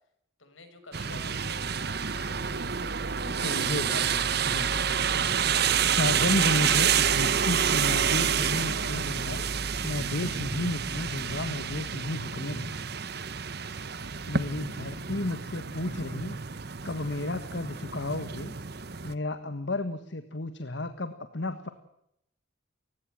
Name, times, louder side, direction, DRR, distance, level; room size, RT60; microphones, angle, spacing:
voice 1, 0.4-2.6 14.0-14.4, left 2 dB, 75° left, 8 dB, 6.1 m, -50 dB
sound 1, 0.9-19.1, right 7 dB, 50° right, 1.0 m, -28 dB
voice 2, 3.2-9.4 9.8-12.8 14.3-16.4 16.8-18.5 19.0-21.7, left 2 dB, 60° left, 10 dB, 1.5 m, -33 dB
30.0 x 17.0 x 7.6 m, 0.78 s
head